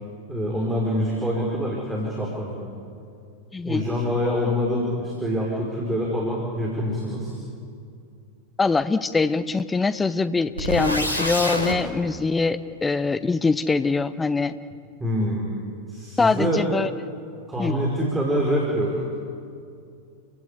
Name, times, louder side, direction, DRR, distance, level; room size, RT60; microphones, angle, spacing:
voice 1, 0.3-2.7 3.6-7.3 15.0-15.5 15.9-16.6 17.5-19.2, equal, 10° right, -3 dB, 5.0 m, -25 dB
voice 2, 3.5-3.8 8.6-14.6 16.2-16.9 17.6-17.7, left 4 dB, 15° left, 13 dB, 0.9 m, -23 dB
sound 1, 10.6-11.8, equal, 85° right, 3.0 m, -25 dB
30.0 x 16.0 x 8.4 m, 2.4 s
figure-of-eight pair, 90°, 0 cm